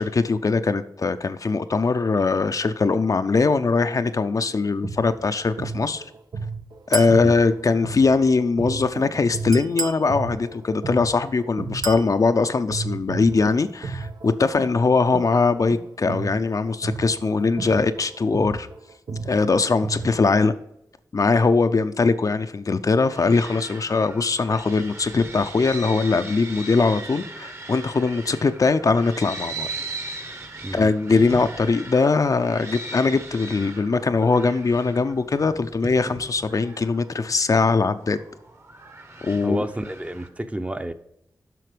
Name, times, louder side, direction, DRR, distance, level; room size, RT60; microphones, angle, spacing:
voice 1, 0.0-6.0 6.9-18.7 19.2-20.5 21.1-29.7 30.7-38.2 39.2-39.6, left 4 dB, 50° left, 10 dB, 0.5 m, -21 dB
sound 1, 4.6-12.3 12.7-20.3, right 4 dB, 85° right, 0.9 m, -34 dB
Chink clink, 6.9-7.2 9.5-10.1 11.8-12.1, right 3 dB, 65° right, 0.8 m, -29 dB
sound 2, 23.1-40.3, right 2 dB, 40° right, 1.1 m, -38 dB
voice 2, 39.4-40.9, right 1 dB, 20° right, 8 dB, 0.7 m, -30 dB
7.7 x 5.8 x 5.0 m, 0.78 s
wide cardioid pair, 85°, 7 cm